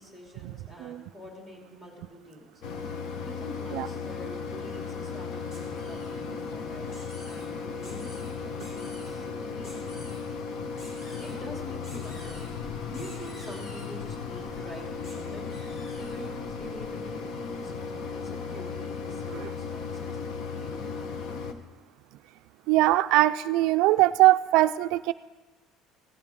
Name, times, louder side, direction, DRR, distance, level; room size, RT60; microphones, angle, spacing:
voice 1, 0.0-2.5 3.2-10.2 10.8-12.5 12.8-21.2, equal, 20° left, -2 dB, 3.1 m, -46 dB
Mechanisms, 2.6-21.5, left 5 dB, 55° left, 1.0 m, -36 dB
sound 1, 5.5-6.2 6.9-7.5 7.8-8.3 8.6-9.1 9.6-10.2 10.8-11.4 11.8-12.5 12.9-13.9 15.0-15.2 15.5-16.3, equal, 40° left, 4.8 m, -50 dB
voice 2, 22.7-25.1, right 17 dB, 70° right, 12 dB, 0.3 m, -21 dB
16.0 x 15.5 x 3.6 m, 1.2 s
cardioid pair, 160°, 0 cm